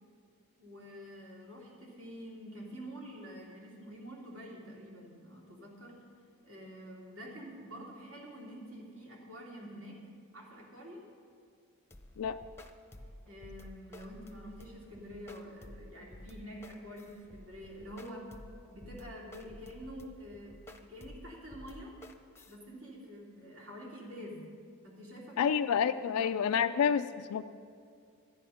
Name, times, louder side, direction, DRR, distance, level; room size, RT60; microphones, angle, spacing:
voice 1, 0.6-5.9 6.4-10.0 10.3-11.0 13.3-18.3 18.7-20.5 20.8-21.9 22.4-24.4 24.8-25.6 25.8-27.0, equal, 65° right, -4 dB, 3.0 m, -47 dB
sound 1, 11.9-22.6, left 1 dB, 10° left, 0.7 m, -52 dB
voice 2, 25.4-27.4, left 7 dB, 85° left, 8 dB, 0.4 m, -29 dB
12.5 x 10.0 x 5.7 m, 2.3 s
head